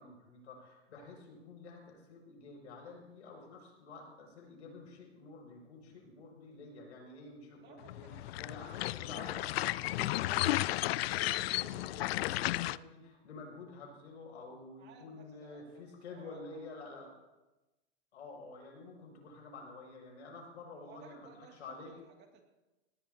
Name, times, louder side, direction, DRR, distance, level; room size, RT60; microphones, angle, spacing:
voice 1, 0.0-8.1 8.4-9.4 9.8-10.8 11.1-17.1 18.1-21.3 21.6-21.9, left 3 dB, 85° left, 0 dB, 6.4 m, -50 dB
voice 2, 7.6-8.6 8.9-10.2 14.8-17.1 20.7-22.5, right 6 dB, 30° right, 2 dB, 2.4 m, -59 dB
sound 1, 7.9-12.8, left 16 dB, 60° left, 0.5 m, -33 dB
18.5 x 18.0 x 2.8 m, 1.1 s
hypercardioid pair, 135°, 34 cm